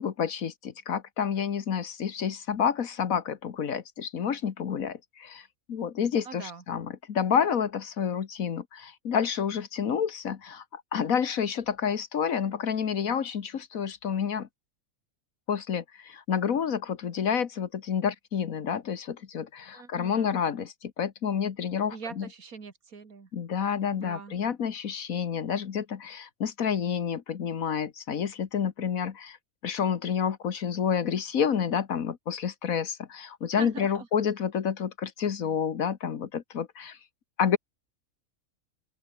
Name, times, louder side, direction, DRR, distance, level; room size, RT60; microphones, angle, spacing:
voice 1, 0.0-14.5 15.5-22.3 23.3-29.4 29.6-37.0 37.4-37.6, left 7 dB, 75° left, 1.7 m, -29 dB
voice 2, 6.2-6.6 19.7-20.3 21.9-23.3 23.9-24.4 33.6-34.1, right 5 dB, 85° right, 2.7 m, -42 dB
open air
omnidirectional pair, 1.5 m